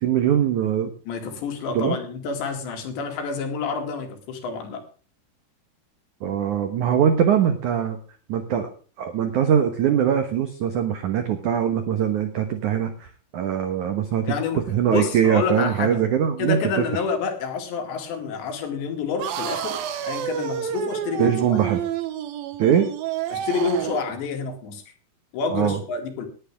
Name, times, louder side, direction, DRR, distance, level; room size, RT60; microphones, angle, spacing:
voice 1, 0.0-0.9 1.7-2.0 6.2-8.0 8.3-8.7 9.0-14.3 14.7-16.8 21.2-21.8 22.6-22.8 25.5-25.8, right 9 dB, 90° right, 8 dB, 1.7 m, -22 dB
voice 2, 1.1-4.8 14.3-16.0 16.4-19.8 20.0-21.6 23.3-24.8 25.3-26.3, left 5 dB, 70° left, 5 dB, 4.5 m, -28 dB
sound 1, 19.2-24.1, right 10 dB, 65° right, 2.5 m, -29 dB
19.0 x 11.0 x 3.6 m, 0.38 s
omnidirectional pair, 5.5 m